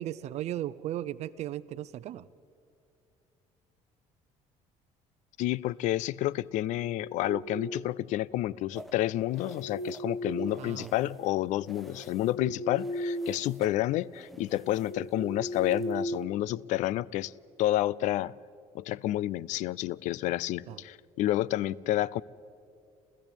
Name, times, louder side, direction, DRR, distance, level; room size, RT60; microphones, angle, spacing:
voice 1, 0.0-2.2 10.6-10.9 20.7-20.8, right 12 dB, 55° right, 0.7 m, -36 dB
voice 2, 5.4-17.3 17.6-18.3 18.7-22.2, left 15 dB, 70° left, 0.5 m, -30 dB
sound 1, 6.5-8.0 9.0-11.2 11.6-13.5 13.8-14.0 14.5-16.9, equal, 35° left, 1.6 m, -37 dB
sound 2, 8.7-11.3 11.6-12.4 12.7-16.2, right 1 dB, ahead, 1.2 m, -51 dB
29.0 x 14.5 x 9.0 m
cardioid pair, 130°, 13 cm